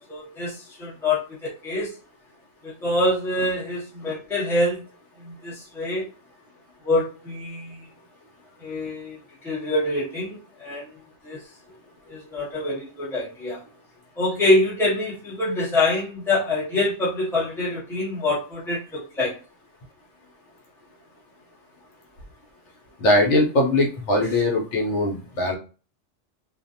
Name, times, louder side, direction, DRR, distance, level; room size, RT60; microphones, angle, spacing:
voice 1, 0.0-1.9 2.6-4.8 5.2-6.1 6.8-7.9 8.6-9.2 9.4-10.9 11.2-11.4 12.1-13.6 14.2-19.4, left 2 dB, ahead, -7 dB, 0.7 m, -25 dB
voice 2, 23.0-25.6, left 1 dB, 70° left, 1 dB, 0.9 m, -21 dB
2.5 x 2.0 x 2.7 m, 0.35 s
omnidirectional pair, 1.3 m